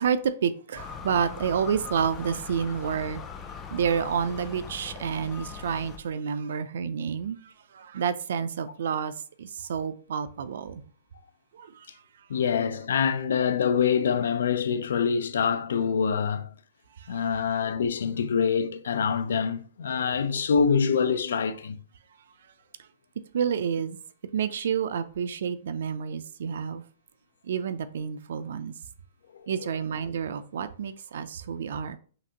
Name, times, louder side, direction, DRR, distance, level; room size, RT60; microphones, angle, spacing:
voice 1, 0.0-3.2 3.7-7.4 7.7-9.1 9.4-10.8 11.5-11.7 23.3-24.0 24.3-26.8 27.5-28.7 29.5-32.0, right 7 dB, 60° right, 0.4 m, -29 dB
sound 1, 0.8-6.0, left 6 dB, 15° left, 0.3 m, -40 dB
voice 2, 12.3-16.5 17.1-21.8 29.6-29.7, left 6 dB, 90° left, 0.4 m, -25 dB
5.8 x 2.5 x 2.8 m
hypercardioid pair, 180°, 0 cm